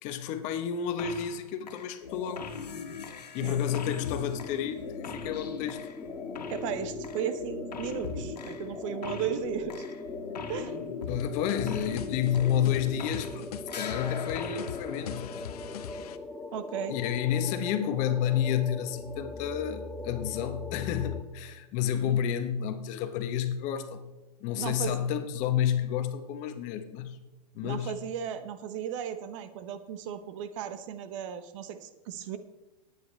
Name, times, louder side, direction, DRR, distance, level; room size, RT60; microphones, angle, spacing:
voice 1, 0.0-2.5 3.3-5.8 11.1-13.5 13.7-15.4 16.9-24.1 24.4-27.2 27.5-28.0, left 9 dB, 40° left, 1.1 m, -30 dB
sound 1, 1.0-1.4 1.7-13.4 13.7-15.9, left 5 dB, 90° left, 1.7 m, -40 dB
sound 2, 3.7-21.2, left 3 dB, 5° left, 0.5 m, -41 dB
voice 2, 6.5-9.9 10.5-10.7 16.5-16.9 22.0-22.1 24.6-24.9 27.6-32.4, right 9 dB, 50° right, 1.0 m, -35 dB
sound 3, 11.2-16.2, left 10 dB, 70° left, 0.9 m, -41 dB
19.0 x 9.4 x 3.3 m
hypercardioid pair, 125°, 20 cm